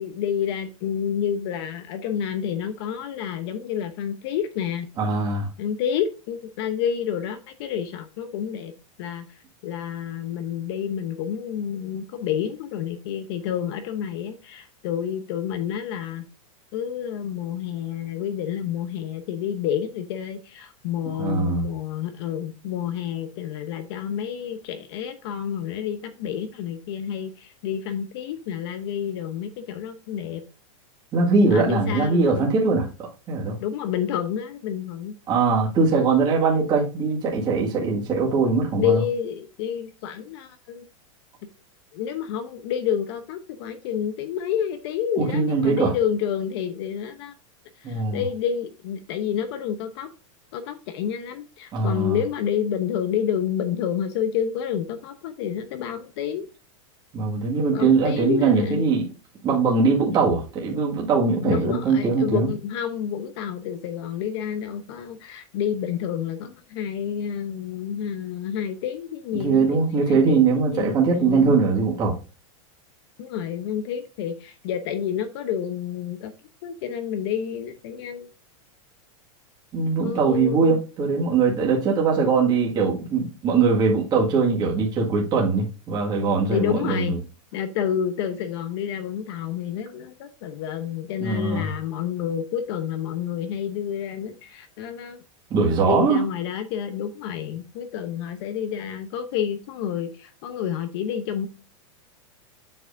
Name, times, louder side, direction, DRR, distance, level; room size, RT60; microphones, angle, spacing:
voice 1, 0.0-4.9 5.6-8.7 9.0-16.2 16.7-30.4 31.5-32.5 33.6-35.1 36.3-36.4 38.7-40.8 41.9-47.3 47.8-50.1 50.5-56.5 57.7-58.9 61.4-70.4 70.7-71.5 73.2-76.3 76.6-78.3 80.0-80.8 86.5-87.2 87.5-95.2 95.8-101.5, left 9 dB, 50° left, 0.8 m, -29 dB
voice 2, 5.0-5.5 21.2-21.6 31.1-33.6 35.3-39.0 45.2-45.9 47.8-48.2 51.7-52.2 57.1-59.0 59.4-62.5 69.4-72.2 79.7-87.2 91.2-91.7 95.5-96.2, right 4 dB, 25° right, 1.8 m, -21 dB
7.9 x 6.1 x 2.6 m
supercardioid pair, 155°, 18 cm